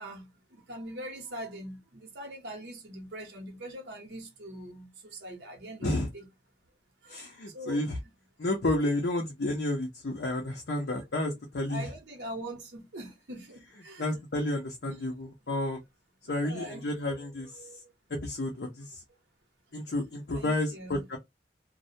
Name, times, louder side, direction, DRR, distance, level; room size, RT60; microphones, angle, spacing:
voice 1, 0.0-6.3 7.0-7.9 10.8-10.9 11.7-14.2 14.9-15.1 15.5-15.6 16.3-17.8 20.3-21.1, right 1 dB, 80° right, 0.9 m, -43 dB
voice 2, 7.1-8.0 8.4-11.9 14.0-15.8 16.3-17.5 18.1-19.0 19.7-21.2, left 1 dB, 75° left, 0.6 m, -31 dB
2.3 x 2.1 x 2.7 m
head